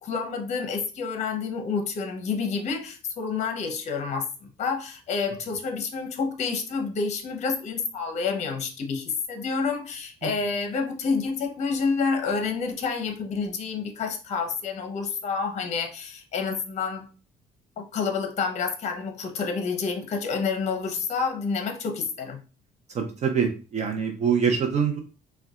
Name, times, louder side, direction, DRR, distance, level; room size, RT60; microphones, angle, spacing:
voice 1, 0.0-17.1 17.8-22.4, left 5 dB, 40° left, 5 dB, 0.7 m, -29 dB
voice 2, 22.9-25.0, right 6 dB, 40° right, 4 dB, 0.6 m, -24 dB
3.8 x 2.2 x 2.3 m, 0.33 s
cardioid pair, 110°, 17 cm